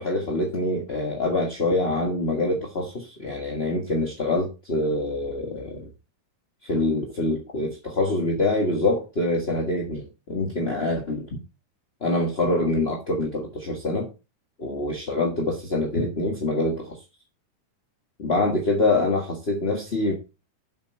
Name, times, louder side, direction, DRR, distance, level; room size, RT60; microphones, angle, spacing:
voice 1, 0.0-5.9 6.6-11.3 12.0-14.1 14.6-17.0 18.2-20.1, left 2 dB, 30° left, 0 dB, 1.1 m, -25 dB
7.8 x 7.2 x 5.4 m, 0.29 s
omnidirectional pair, 3.6 m